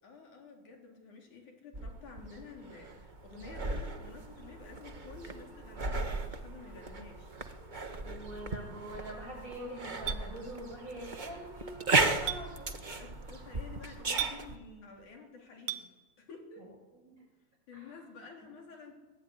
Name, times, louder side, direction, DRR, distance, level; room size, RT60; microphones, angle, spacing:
voice 1, 0.0-7.3 12.9-15.9 16.2-16.7 17.7-18.9, left 4 dB, 70° left, 2 dB, 5.5 m, -51 dB
sound 1, 1.7-14.6, right 3 dB, 70° right, 0.4 m, -36 dB
voice 2, 8.0-12.7 16.6-16.7 17.1-17.2 17.7-17.9, right 1 dB, 25° right, 2 dB, 7.6 m, -44 dB
Chink clink, 10.1-10.2 12.3-12.4 14.2-14.4 15.7-15.8, right 11 dB, 90° right, 2.8 m, -33 dB
24.5 x 21.0 x 9.9 m, 1.3 s
omnidirectional pair, 3.5 m